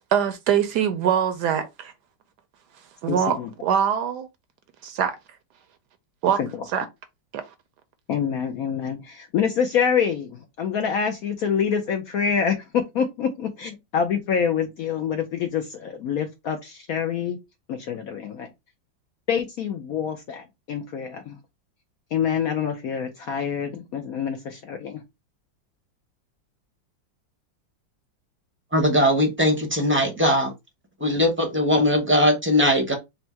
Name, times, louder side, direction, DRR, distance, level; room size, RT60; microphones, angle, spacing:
voice 1, 0.0-1.9 3.0-4.3 4.8-5.2 6.2-6.4 6.7-6.8 7.3-7.4, right 8 dB, 70° right, 1.1 m, -23 dB
voice 2, 3.1-3.5 6.4-6.6 8.1-17.4 17.7-18.5 19.3-21.4 22.1-25.0, left 7 dB, 65° left, 0.9 m, -26 dB
voice 3, 28.7-30.5 31.0-32.9, left 1 dB, 10° right, 0.6 m, -20 dB
4.4 x 2.2 x 4.3 m
omnidirectional pair, 2.0 m